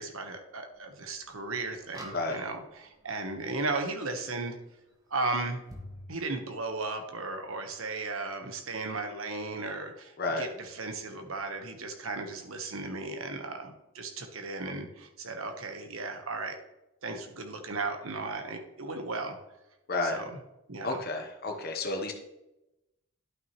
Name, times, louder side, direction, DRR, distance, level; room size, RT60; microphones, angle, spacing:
voice 1, 0.0-4.6 5.1-5.6 6.1-16.6 17.0-19.4 20.0-20.4 20.7-21.0, right 3 dB, 75° right, 5 dB, 1.2 m, -35 dB
sound 1, 0.8-0.9 1.8-2.9 5.7-6.0, equal, 15° right, 1.3 m, -45 dB
voice 2, 2.1-2.4 10.2-10.5 19.9-20.2 20.8-22.1, left 2 dB, 45° left, 2 dB, 1.0 m, -31 dB
11.0 x 6.2 x 3.1 m, 0.93 s
head